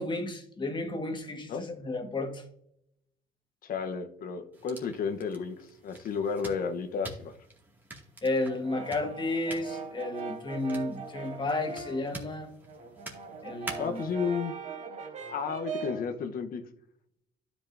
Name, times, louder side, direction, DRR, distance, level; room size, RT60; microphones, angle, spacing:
voice 1, 0.0-2.4 8.2-12.5 13.4-14.0, left 2 dB, 25° left, 5 dB, 1.6 m, -32 dB
voice 2, 3.6-7.3 13.8-14.5 15.3-16.6, left 6 dB, 55° left, 8 dB, 1.0 m, -32 dB
sound 1, 4.5-14.1, right 1 dB, 10° right, 2.2 m, -47 dB
Brass instrument, 8.4-12.1 12.5-16.1, right 5 dB, 45° right, 1.8 m, -40 dB
12.5 x 5.3 x 2.7 m, 0.73 s
cardioid pair, 110°, 17 cm